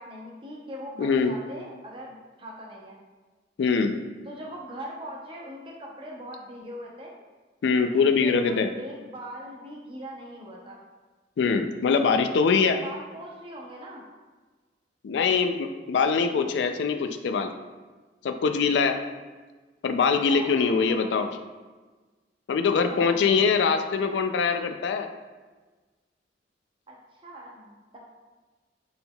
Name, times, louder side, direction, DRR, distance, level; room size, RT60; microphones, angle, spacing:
voice 1, 0.0-3.0 4.2-7.1 7.7-10.8 12.7-14.0 20.1-21.1 22.8-23.2 26.9-27.0 27.2-28.0, equal, 30° right, -2 dB, 0.6 m, -41 dB
voice 2, 1.0-1.3 3.6-4.0 7.6-8.7 11.4-12.8 15.0-17.5 18.2-19.0 19.8-21.3 22.5-25.1, left 5 dB, 80° left, 8 dB, 0.3 m, -23 dB
4.3 x 3.6 x 2.2 m, 1.3 s
head